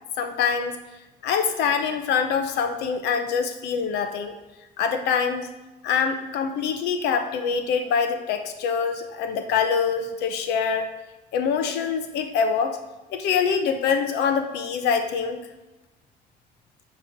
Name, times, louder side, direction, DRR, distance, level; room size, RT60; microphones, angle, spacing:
voice 1, 0.2-0.7 1.2-4.3 4.8-5.5 5.8-10.9 11.3-12.8 13.1-15.4, left 6 dB, 85° left, 7 dB, 0.8 m, -24 dB
8.8 x 3.2 x 5.1 m, 1.0 s
cardioid pair, 110°, 17 cm